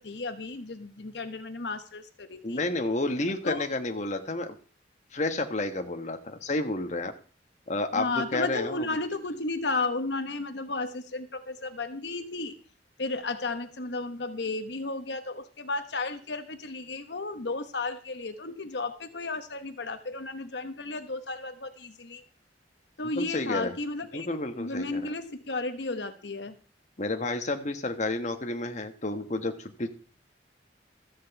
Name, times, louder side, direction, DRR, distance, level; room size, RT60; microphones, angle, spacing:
voice 1, 0.0-2.6 3.4-3.7 7.9-12.5 13.0-22.2 23.0-24.3 24.6-26.6, left 3 dB, 70° left, 8 dB, 1.1 m, -33 dB
voice 2, 2.4-4.5 5.1-7.1 7.7-8.9 23.2-23.7 24.1-25.1 27.0-29.9, left 2 dB, 40° left, 5 dB, 1.2 m, -30 dB
14.0 x 5.2 x 8.0 m, 0.41 s
head